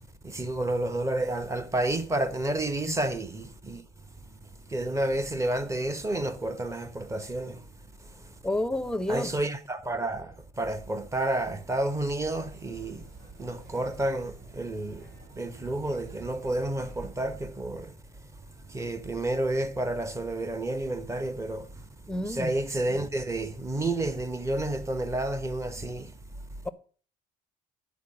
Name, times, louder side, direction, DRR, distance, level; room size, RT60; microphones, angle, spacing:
voice 1, 0.2-3.8 4.7-7.6 9.1-13.1 13.4-15.1 15.3-17.9 18.7-21.7 22.2-26.1, right 1 dB, 15° right, 1.1 m, -30 dB
voice 2, 8.4-9.3 22.1-22.6 26.6-26.7, left 1 dB, 5° left, 0.8 m, -30 dB
sound 1, 12.1-17.2, right 5 dB, 50° right, 6.6 m, -52 dB
10.5 x 4.7 x 7.7 m
cardioid pair, 110°, 17 cm